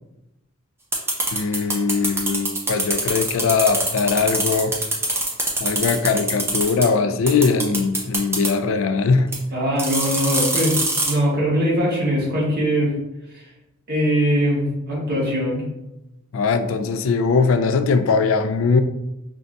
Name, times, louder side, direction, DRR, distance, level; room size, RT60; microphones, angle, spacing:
sound 1, 0.9-6.9 7.3-8.5 9.3-9.4 9.8-11.1, right 2 dB, 10° right, 0.4 m, -23 dB
voice 1, 1.3-4.7 5.6-9.3 16.3-18.8, left 4 dB, 65° left, 9 dB, 0.3 m, -20 dB
voice 2, 9.5-10.8 11.0-12.9 13.3-13.4 13.9-15.6, equal, 45° right, -5 dB, 1.3 m, -21 dB
5.2 x 2.3 x 2.6 m, 0.93 s
head